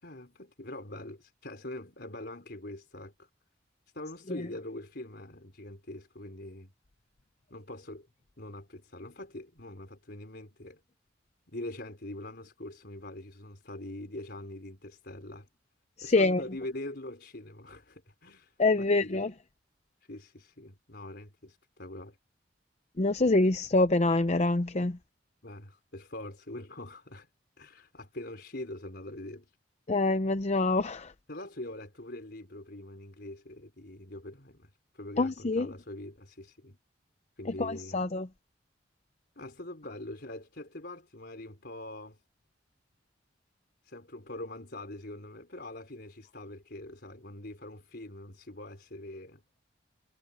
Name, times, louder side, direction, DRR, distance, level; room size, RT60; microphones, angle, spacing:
voice 1, 0.0-3.3 3.9-6.7 7.5-8.1 8.4-10.8 11.5-15.5 16.0-19.3 20.0-22.2 25.4-27.3 27.6-29.5 31.3-36.8 37.4-38.0 39.4-42.2 43.8-49.4, left 1 dB, 60° left, 4.4 m, -43 dB
voice 2, 16.0-16.4 18.6-19.3 23.0-25.0 29.9-31.1 35.2-35.7 37.6-38.3, left 2 dB, 35° left, 0.6 m, -25 dB
head